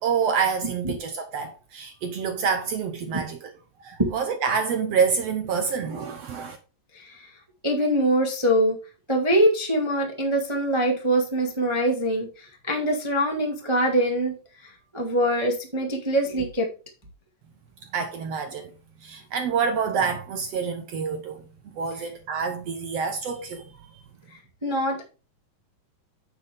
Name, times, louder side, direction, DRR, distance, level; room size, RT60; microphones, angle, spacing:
voice 1, 0.0-3.4 3.8-6.6 17.9-18.7 19.0-21.4 21.7-23.7, right 6 dB, 70° right, 1.6 m, -27 dB
voice 2, 6.9-7.3 7.6-8.8 9.1-14.3 14.6-16.7 22.0-22.1 24.6-25.1, right 1 dB, 45° right, 0.3 m, -24 dB
9.7 x 6.6 x 3.5 m
omnidirectional pair, 4.0 m